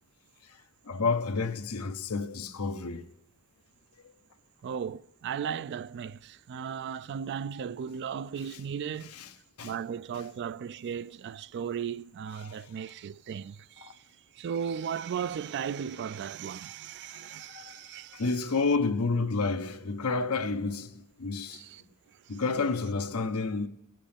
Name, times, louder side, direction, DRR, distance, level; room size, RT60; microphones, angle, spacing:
voice 1, 0.8-3.0 4.0-4.1 9.1-9.3 9.6-9.7 12.4-12.6 13.8-13.9 17.5-21.6 22.3-23.7, left 4 dB, 90° left, 0.9 m, -30 dB
voice 2, 4.6-9.2 9.6-14.0 14.3-18.3 21.5-21.8 22.3-22.4, right 7 dB, 50° right, 0.3 m, -36 dB
18.0 x 7.6 x 3.4 m
head